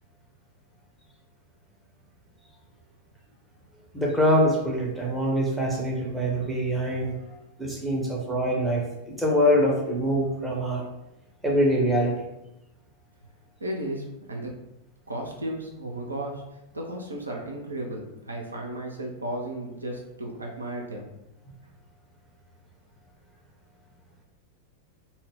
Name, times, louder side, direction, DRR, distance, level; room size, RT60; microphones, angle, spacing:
voice 1, 3.9-10.8 11.4-12.1, equal, 5° right, -3 dB, 0.6 m, -24 dB
voice 2, 13.6-14.5 15.1-21.1, right 1 dB, 80° right, 0 dB, 0.4 m, -34 dB
2.1 x 2.0 x 3.4 m, 0.91 s
figure-of-eight pair, 90°, 0 cm